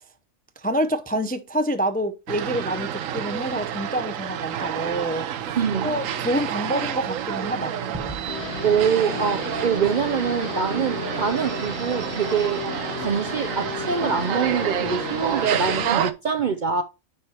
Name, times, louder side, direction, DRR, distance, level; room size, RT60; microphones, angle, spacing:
voice 1, 0.6-5.3 5.8-7.7, right 1 dB, 15° left, 0.4 m, -27 dB
sound 1, 2.3-16.1, right 9 dB, 90° right, 1.1 m, -29 dB
voice 2, 5.6-5.9 8.6-12.6 13.0-16.8, right 6 dB, 55° right, 0.6 m, -24 dB
Gunshot gunfire / Fireworks / Boom, 7.9-12.7, right 1 dB, 15° right, 0.7 m, -44 dB
Guitar, 8.3-15.9, left 7 dB, 65° left, 1.1 m, -34 dB
9.6 x 5.0 x 2.8 m
omnidirectional pair, 1.3 m